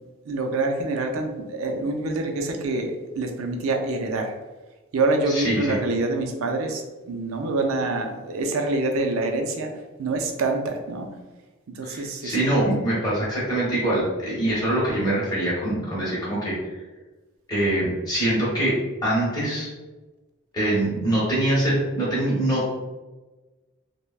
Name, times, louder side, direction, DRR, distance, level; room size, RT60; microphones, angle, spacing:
voice 1, 0.3-4.3 4.9-9.7 10.0-11.1 11.8-12.4, right 2 dB, 80° right, 4 dB, 0.4 m, -26 dB
voice 2, 5.3-5.8 11.8-16.5 17.5-19.7 20.5-22.6, right 1 dB, 20° left, -7 dB, 1.1 m, -24 dB
3.2 x 2.1 x 2.3 m, 1.2 s
head